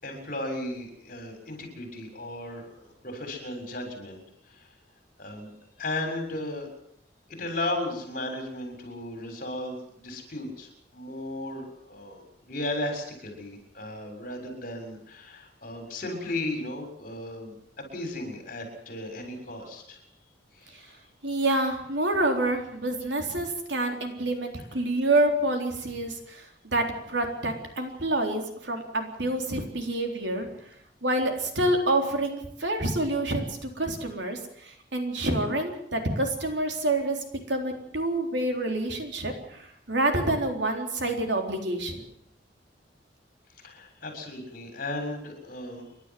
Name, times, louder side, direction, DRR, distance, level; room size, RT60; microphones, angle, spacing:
voice 1, 0.0-4.2 4.5-4.7 5.2-5.5 5.8-6.7 7.3-20.0 20.6-20.9 43.6-45.8, left 1 dB, 50° left, 4 dB, 6.8 m, -35 dB
voice 2, 21.2-30.5 31.0-37.2 37.5-42.1, right 1 dB, 75° right, 4 dB, 3.9 m, -27 dB
30.0 x 12.0 x 7.7 m, 0.69 s
head